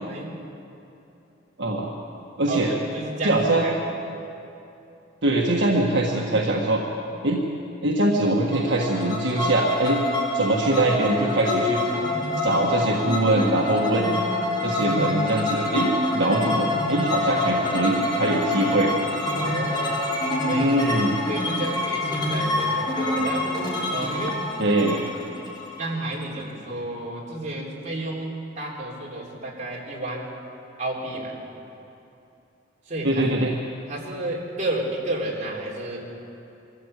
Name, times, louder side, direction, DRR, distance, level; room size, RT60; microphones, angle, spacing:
voice 1, 0.0-0.4 2.5-4.0 19.3-20.7 21.3-23.5 23.9-24.4 24.9-25.0 25.8-30.3 30.8-31.4 32.9-33.4 33.9-36.1, right 2 dB, 40° right, -3 dB, 3.8 m, -31 dB
voice 2, 1.6-1.9 2.4-2.7 3.2-3.7 5.2-6.8 7.2-7.4 7.8-10.0 10.3-11.8 12.4-14.1 14.6-18.9 20.5-21.2 24.6-25.0 33.0-33.5, right 1 dB, 65° right, -2 dB, 1.5 m, -22 dB
sound 1, 8.5-26.2, left 2 dB, 25° left, 5.4 m, -26 dB
23.0 x 14.0 x 8.3 m, 2.8 s
head